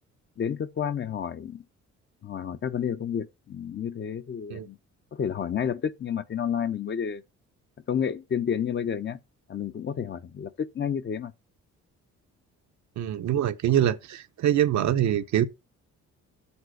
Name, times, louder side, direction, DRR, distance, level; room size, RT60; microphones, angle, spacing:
voice 1, 0.4-1.6 2.2-4.8 5.1-7.2 7.9-9.2 9.5-11.3, left 8 dB, 40° left, 0.6 m, -30 dB
voice 2, 13.0-15.5, right 11 dB, 65° right, 0.8 m, -24 dB
7.1 x 4.0 x 6.3 m
cardioid pair, 90°, 30 cm